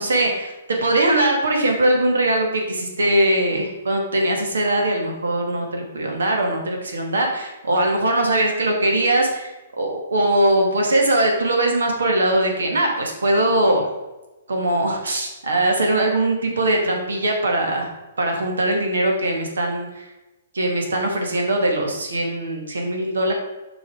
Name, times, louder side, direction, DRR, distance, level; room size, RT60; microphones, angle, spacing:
voice 1, 0.0-13.8 14.5-17.9 18.2-20.1 20.5-23.3, right 1 dB, 85° right, 1 dB, 2.0 m, -21 dB
6.7 x 5.4 x 4.8 m, 1.0 s
hypercardioid pair, 145°, 0 cm